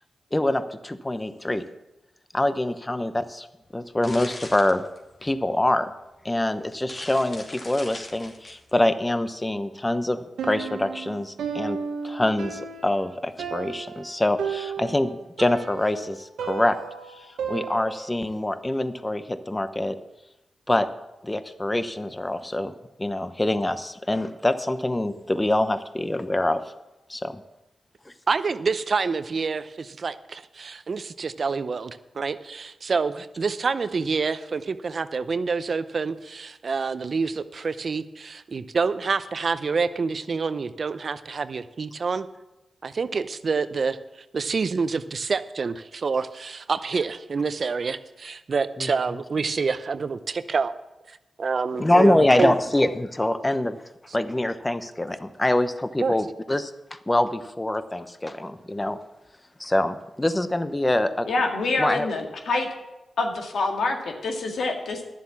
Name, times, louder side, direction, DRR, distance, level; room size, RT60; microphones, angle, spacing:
voice 1, 0.3-1.6 2.3-3.5 3.7-4.8 5.2-5.9 6.2-11.8 12.0-16.8 17.5-20.0 20.7-20.9 21.2-22.7 23.0-26.6 27.1-27.4 48.8-48.9 51.7-53.8 54.1-59.0 59.6-61.3 61.8-62.1, left 1 dB, 20° left, 11 dB, 0.9 m, -25 dB
sound 1, 3.6-5.4 6.1-6.2 6.6-8.7, left 2 dB, 50° left, 2.7 m, -41 dB
Piano, 10.4-18.2, right 6 dB, 90° right, 1.1 m, -34 dB
voice 2, 28.3-42.3 42.8-44.0 44.3-50.7 51.1-52.5 56.0-56.1, right 4 dB, 60° right, 13 dB, 0.6 m, -27 dB
voice 3, 61.3-62.7 63.2-65.0, left 3 dB, 75° left, 2 dB, 1.9 m, -26 dB
11.0 x 7.5 x 7.2 m, 0.98 s
supercardioid pair, 45°, 0 cm